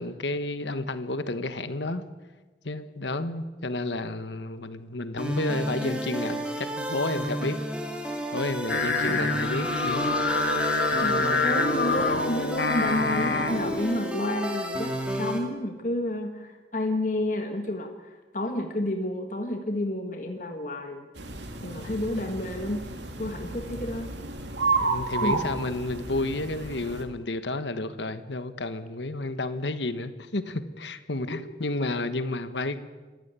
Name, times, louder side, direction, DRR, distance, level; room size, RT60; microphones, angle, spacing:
voice 1, 0.0-2.0 2.6-7.6 8.3-10.2 24.8-32.8, left 2 dB, 85° left, 11 dB, 1.3 m, -31 dB
sound 1, 5.2-15.4, right 1 dB, 5° right, 2.5 m, -32 dB
Singing, 8.7-13.9, left 3 dB, 65° left, 1.8 m, -26 dB
voice 2, 11.0-21.1 21.6-22.9 23.2-24.1 25.2-25.5 31.3-31.4, left 1 dB, 45° left, 4 dB, 1.6 m, -30 dB
sound 2, 21.2-27.0, right 3 dB, 85° right, 2.7 m, -31 dB
26.5 x 14.5 x 8.3 m, 1.3 s
head